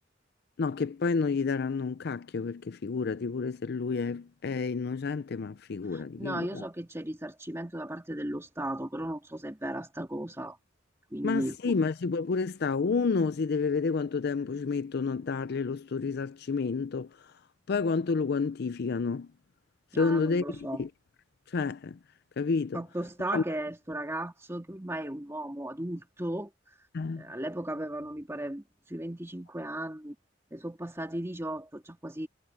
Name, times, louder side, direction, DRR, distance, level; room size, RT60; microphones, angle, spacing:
voice 1, 0.6-6.6 11.2-17.3 17.7-19.3 20.0-20.9 21.5-22.0 22.4-22.8 23.3-23.4 26.9-27.2, left 4 dB, 60° left, 0.5 m, -30 dB
voice 2, 5.9-10.6 11.1-11.6 19.9-20.8 22.7-26.9 27.2-30.2 30.5-32.3, right 1 dB, 15° right, 2.1 m, -36 dB
head